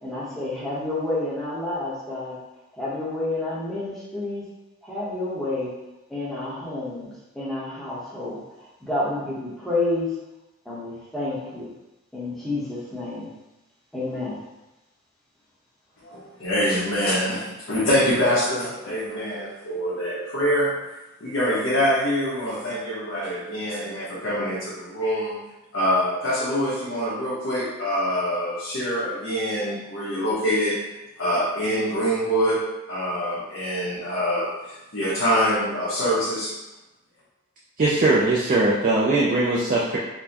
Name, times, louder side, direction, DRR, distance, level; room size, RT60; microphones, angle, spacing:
voice 1, 0.0-2.4 2.7-4.5 4.8-5.7 6.1-10.1 10.6-11.7 12.1-13.3 13.9-14.4, left 2 dB, ahead, -8 dB, 0.9 m, -29 dB
voice 2, 16.0-20.7 21.2-25.3 25.7-30.8 31.2-32.6 32.9-36.5, equal, 65° left, -10 dB, 0.9 m, -25 dB
voice 3, 37.8-40.0, right 2 dB, 40° right, -5 dB, 0.4 m, -20 dB
4.3 x 2.1 x 2.8 m, 1.0 s
head